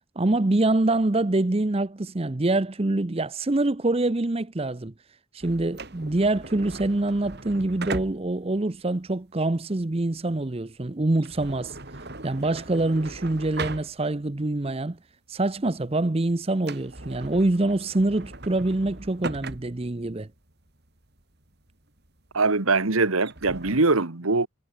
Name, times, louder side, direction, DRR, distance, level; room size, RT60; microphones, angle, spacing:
voice 1, 0.2-4.9 5.3-11.8 12.2-15.0 15.3-20.3, right 2 dB, 30° right, 0.7 m, -25 dB
sound 1, 5.4-14.4 14.8-14.9 15.5-15.8 16.1-16.2 16.5-23.8, right 3 dB, 50° right, 3.1 m, -39 dB
voice 2, 22.3-24.5, right 3 dB, 85° right, 1.7 m, -22 dB
head